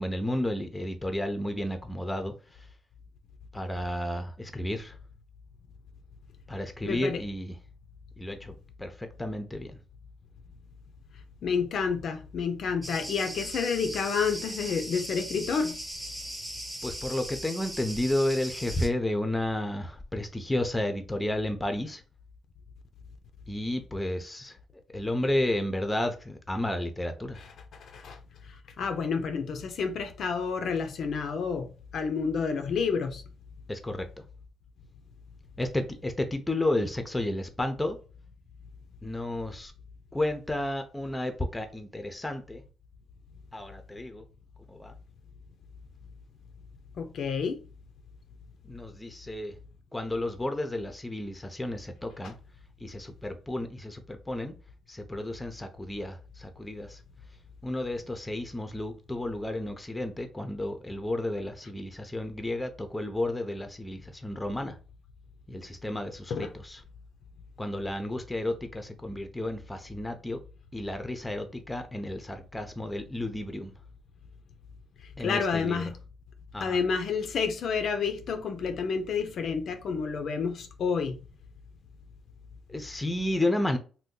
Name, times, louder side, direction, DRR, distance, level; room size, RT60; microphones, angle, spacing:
voice 1, 0.0-2.3 3.5-5.0 6.5-7.6 8.2-9.8 16.8-22.0 23.5-24.6 24.9-27.4 33.7-34.1 35.6-38.0 39.0-39.7 40.1-42.6 43.5-44.2 44.7-44.9 48.6-49.6 49.9-52.3 52.8-54.5 54.9-57.0 57.6-64.8 65.5-66.8 67.6-70.4 70.7-73.7 75.2-75.9 76.5-76.8 82.7-83.8, left 1 dB, 10° left, 0.5 m, -32 dB
voice 2, 6.8-7.2 11.4-15.8 27.9-28.2 28.8-31.7 31.9-33.2 47.0-47.6 66.3-66.5 75.2-76.0 76.6-81.2, left 5 dB, 65° left, 0.4 m, -29 dB
Cricket, 12.8-18.9, right 1 dB, 10° right, 0.9 m, -39 dB
2.6 x 2.2 x 3.7 m
cardioid pair, 90°, 0 cm